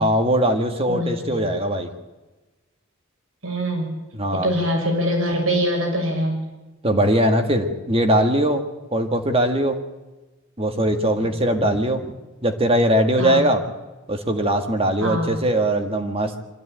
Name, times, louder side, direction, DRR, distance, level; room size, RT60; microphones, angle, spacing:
voice 1, 0.0-1.9 4.1-4.5 6.8-8.6 8.9-9.8 10.6-12.0 12.4-13.6 14.1-16.3, right 1 dB, 30° right, 6 dB, 1.9 m, -20 dB
voice 2, 0.9-1.4 3.4-3.9 4.3-6.4 13.2-13.5 15.0-15.3, equal, 80° right, 2 dB, 6.7 m, -23 dB
24.5 x 14.0 x 9.0 m, 1.1 s
head